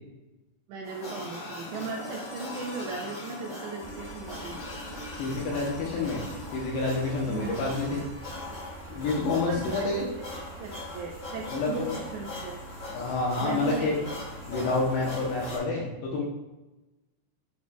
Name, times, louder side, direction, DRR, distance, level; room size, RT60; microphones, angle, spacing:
voice 1, 0.7-4.6 7.3-7.6 9.5-10.1 10.4-12.6 13.4-14.0, right 4 dB, 80° right, -1 dB, 2.6 m, -37 dB
sound 1, 0.8-15.6, left 2 dB, 45° left, 1.4 m, -41 dB
sound 2, 1.7-9.7 11.9-12.0, left 1 dB, 90° left, 3.9 m, -46 dB
sound 3, 3.8-15.5, right 3 dB, 60° right, 2.5 m, -45 dB
voice 2, 5.2-6.2 6.5-8.0 8.9-10.1 11.5-12.0 12.9-13.9 14.5-16.2, left 3 dB, 75° left, -3 dB, 2.7 m, -28 dB
8.8 x 5.1 x 2.3 m, 1.1 s
omnidirectional pair, 5.6 m